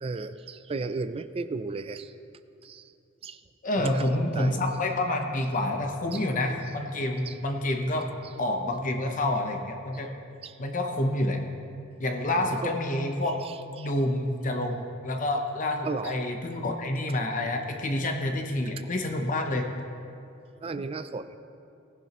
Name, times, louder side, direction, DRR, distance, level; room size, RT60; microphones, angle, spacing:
voice 1, 0.0-2.1 2.6-2.8 3.2-3.4 3.8-4.6 6.1-6.2 7.3-7.4 10.4-10.6 12.4-12.7 13.8-13.9 15.8-16.2 20.6-21.4, right 3 dB, 30° right, 12 dB, 0.3 m, -34 dB
voice 2, 3.6-8.1 8.4-10.1 10.6-11.4 12.0-13.4 13.8-19.7, left 1 dB, 40° left, 3 dB, 0.8 m, -28 dB
18.5 x 11.0 x 3.0 m, 2.6 s
head